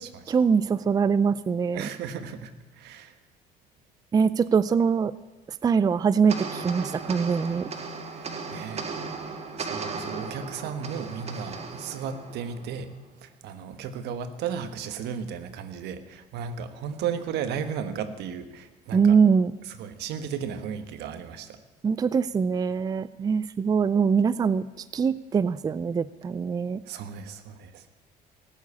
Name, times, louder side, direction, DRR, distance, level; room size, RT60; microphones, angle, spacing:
voice 1, 0.3-1.9 4.1-5.1 5.6-7.7 18.9-19.6 21.8-26.8, right 6 dB, 20° right, 17 dB, 0.4 m, -23 dB
voice 2, 1.7-3.2 7.4-7.6 8.1-8.9 9.6-12.9 13.2-19.2 19.7-21.6 26.8-27.9, right 7 dB, 80° right, 10 dB, 1.3 m, -35 dB
sound 1, 6.3-12.9, right 4 dB, 40° right, 1.7 m, -36 dB
18.0 x 7.5 x 8.5 m, 1.1 s
cardioid pair, 110°, 17 cm